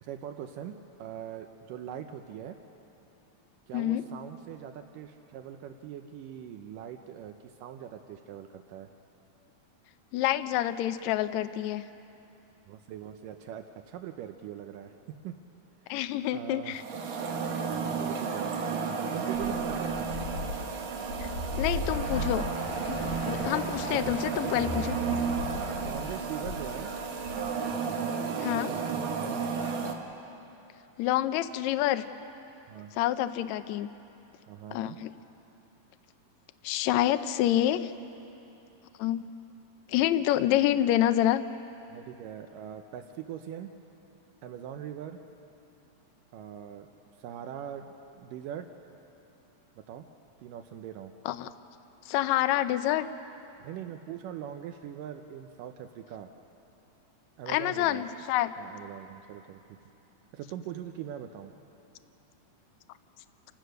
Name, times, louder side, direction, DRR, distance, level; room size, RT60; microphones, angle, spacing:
voice 1, 0.0-2.6 3.7-8.9 12.7-15.4 15.8-16.8 17.8-20.1 23.2-24.9 25.8-26.9 27.9-29.7 32.7-32.9 34.5-35.0 41.9-43.7 44.4-45.2 46.3-46.9 47.2-47.9 48.1-48.7 49.8-50.1 50.4-51.1 53.6-56.3 57.4-58.0 58.6-59.8 60.3-61.5, right 10 dB, 80° right, 6 dB, 2.3 m, -42 dB
voice 2, 3.7-4.1 10.1-11.8 15.9-16.8 21.2-21.3 21.6-22.5 22.8-24.9 28.4-28.7 31.0-32.1 32.9-33.9 34.7-35.1 36.6-37.9 39.0-39.2 39.9-41.4 51.2-51.5 52.1-53.1 57.5-58.5, left 13 dB, 80° left, 11 dB, 1.7 m, -27 dB
sound 1, 16.7-29.9, right 5 dB, 55° right, 1.5 m, -33 dB
sound 2, 19.3-27.7, left 2 dB, 60° left, 2.6 m, -37 dB
28.0 x 16.5 x 6.5 m, 3.0 s
omnidirectional pair, 3.9 m